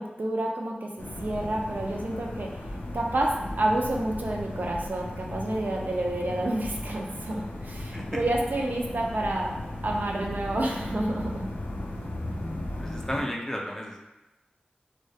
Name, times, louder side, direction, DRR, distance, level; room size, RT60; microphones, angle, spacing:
voice 1, 0.0-2.5 2.9-3.3 3.6-9.5 9.8-11.5, right 1 dB, 65° right, -1 dB, 0.3 m, -29 dB
sound 1, 1.0-13.2, left 1 dB, 90° left, 0.3 m, -36 dB
voice 2, 12.8-14.0, equal, 15° left, -2 dB, 0.4 m, -33 dB
2.2 x 2.1 x 2.6 m, 1.0 s
wide cardioid pair, 55°, 3 cm